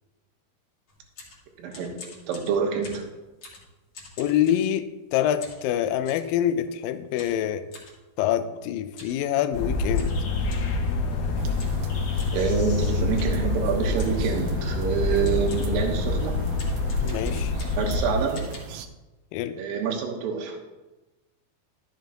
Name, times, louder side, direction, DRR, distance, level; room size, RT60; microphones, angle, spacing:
sound 1, 0.9-5.0 5.4-6.3 7.2-8.0 8.9-9.2 9.5-9.6 9.9-10.8 11.6-11.8 12.2-12.4 13.2-13.5 14.0-14.3 14.9-15.0 15.2-15.8 16.5-18.0 18.3-18.6, left 3 dB, 45° left, 2.5 m, -46 dB
voice 1, 1.6-1.9 2.3-3.0 12.3-16.3 17.3-17.5 17.8-18.4 19.6-20.6, right 6 dB, 70° right, 2 dB, 2.7 m, -27 dB
voice 2, 4.2-7.7 8.2-10.1 17.0-17.5 19.3-19.6, left 10 dB, 90° left, 10 dB, 2.0 m, -26 dB
sound 2, 9.5-18.1, left 3 dB, 60° left, 1.9 m, -26 dB
sound 3, 11.4-18.9, right 6 dB, 85° right, 2.0 m, -38 dB
12.5 x 7.2 x 2.9 m, 1.1 s
omnidirectional pair, 4.7 m